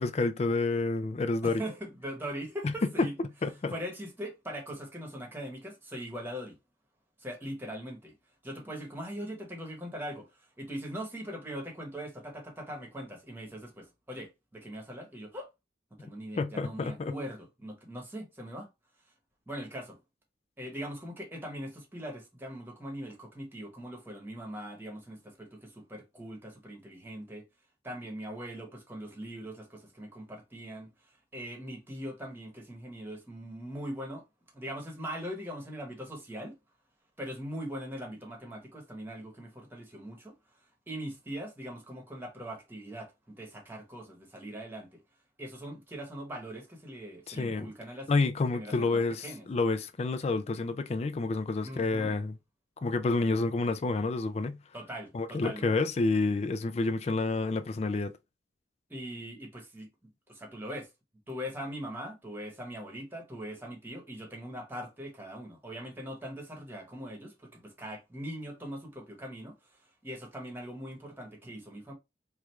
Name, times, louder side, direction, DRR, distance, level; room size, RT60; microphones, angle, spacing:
voice 1, 0.0-1.6 2.6-2.7 3.4-3.7 16.4-17.1 47.3-47.7 48.1-52.3 52.8-54.6 55.1-58.1, left 3 dB, 35° left, 0.4 m, -29 dB
voice 2, 1.4-3.1 3.7-6.6 7.2-8.1 8.4-15.5 16.0-18.7 19.5-20.0 20.6-27.5 27.8-34.2 34.5-36.5 37.2-45.0 45.4-48.1 48.5-49.5 51.6-52.1 54.7-55.7 58.9-59.9 60.3-60.9 61.3-71.9, equal, 10° right, 1.1 m, -41 dB
3.3 x 2.4 x 4.3 m
head